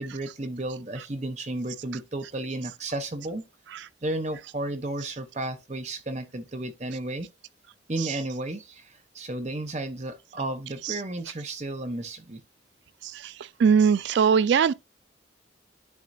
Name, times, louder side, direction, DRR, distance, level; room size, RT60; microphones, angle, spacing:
voice 1, 0.0-3.4 4.0-7.3 7.9-12.4, right 1 dB, 35° right, 0.8 m, -33 dB
voice 2, 13.6-14.7, right 6 dB, 65° right, 0.3 m, -19 dB
10.5 x 3.8 x 2.7 m
head